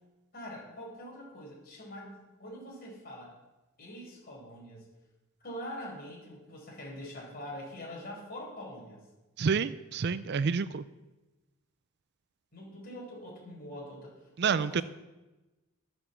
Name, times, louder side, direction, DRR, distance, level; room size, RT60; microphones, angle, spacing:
voice 1, 0.3-3.3 3.8-4.9 5.4-9.0 12.5-14.2 14.4-14.8, equal, 45° left, -1 dB, 5.4 m, -44 dB
voice 2, 9.4-10.8 14.4-14.8, right 5 dB, 50° right, 15 dB, 0.4 m, -28 dB
13.0 x 8.0 x 7.2 m, 1.1 s
head